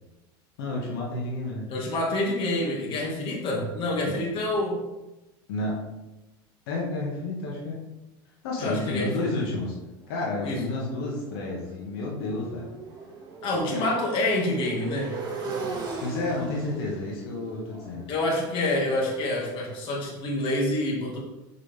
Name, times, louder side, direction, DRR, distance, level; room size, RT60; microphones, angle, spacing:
voice 1, 0.6-1.7 4.1-4.2 5.5-5.8 6.7-7.8 8.4-9.7 10.1-12.7 13.7-13.8 16.0-18.1, left 2 dB, 80° left, -2 dB, 1.7 m, -31 dB
voice 2, 1.7-4.8 8.6-9.5 10.4-10.7 13.4-15.1 18.1-21.2, left 1 dB, 45° left, -1 dB, 2.0 m, -27 dB
Motorcycle, 10.1-19.9, right 4 dB, 35° right, 2.5 m, -39 dB
6.6 x 5.7 x 3.5 m, 1.0 s
supercardioid pair, 115°, 12 cm